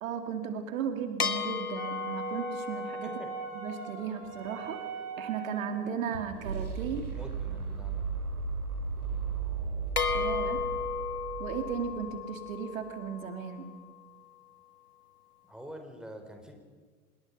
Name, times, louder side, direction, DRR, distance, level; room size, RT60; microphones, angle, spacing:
voice 1, 0.0-3.1 3.5-4.8 5.2-7.1 10.1-10.6 11.4-13.7, right 7 dB, 65° right, 7 dB, 2.3 m, -35 dB
sound 1, 1.2-4.9 10.0-14.3, left 5 dB, 85° left, 1.5 m, -35 dB
Wind instrument woodwind instrument, 1.8-5.9, right 7 dB, 45° right, 5.2 m, -41 dB
voice 2, 3.0-3.3 6.9-8.1 15.4-16.6, equal, ahead, 4 dB, 4.6 m, -46 dB
sound 2, 4.2-12.3, right 5 dB, 80° right, 2.7 m, -36 dB
26.5 x 21.0 x 5.6 m, 1.5 s
figure-of-eight pair, 80°, 44 cm